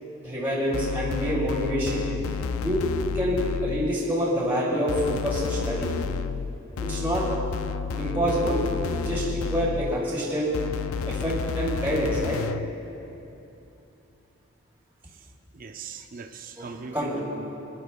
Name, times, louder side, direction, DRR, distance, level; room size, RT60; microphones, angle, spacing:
voice 1, 0.2-2.1 2.6-2.8 3.1-5.9 6.8-7.2 8.0-10.5 11.1-12.4 16.6-17.2, equal, 10° right, -9 dB, 2.6 m, -27 dB
sound 1, 0.7-4.0 4.9-10.0 10.5-12.8, left 5 dB, 85° left, 0.4 m, -31 dB
voice 2, 15.5-17.2, right 4 dB, 40° right, 5 dB, 0.6 m, -40 dB
27.0 x 10.5 x 2.3 m, 2.9 s
head